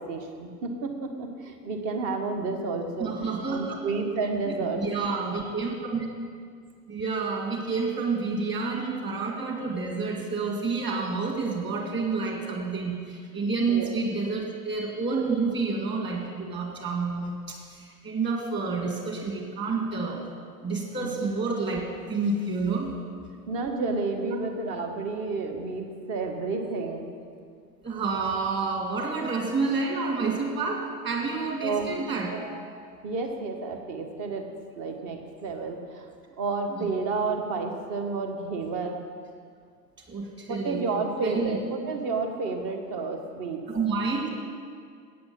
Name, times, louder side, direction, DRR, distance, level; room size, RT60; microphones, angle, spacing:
voice 1, 0.0-4.8 13.7-14.0 21.0-21.1 23.5-27.1 31.6-31.9 33.0-34.5 34.8-36.0 36.4-39.0 40.5-43.6, right 3 dB, 40° right, 4 dB, 1.6 m, -31 dB
voice 2, 3.0-3.8 4.4-6.1 6.9-20.3 20.6-22.9 27.8-32.5 36.7-36.9 40.1-41.6 43.7-44.3, right 4 dB, 20° right, -1 dB, 2.4 m, -29 dB
8.7 x 8.6 x 7.1 m, 2.1 s
figure-of-eight pair, 85°, 50 cm